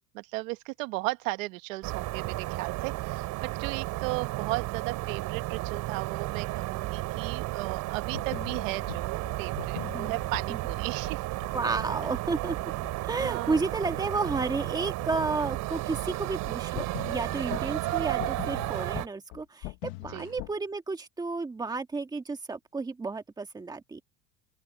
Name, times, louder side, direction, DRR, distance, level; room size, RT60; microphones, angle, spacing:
voice 1, 0.1-11.2 13.2-13.6 17.5-17.7 20.1-20.3, right 22 dB, 85° right, 1.4 m, -36 dB
sound 1, 1.8-19.1, right 18 dB, 50° right, 3.4 m, -33 dB
sound 2, 7.9-20.6, left 21 dB, 60° left, 1.0 m, -42 dB
voice 2, 11.5-12.6 13.0-24.0, right 4 dB, 10° right, 1.7 m, -32 dB
open air
cardioid pair, 155°, 39 cm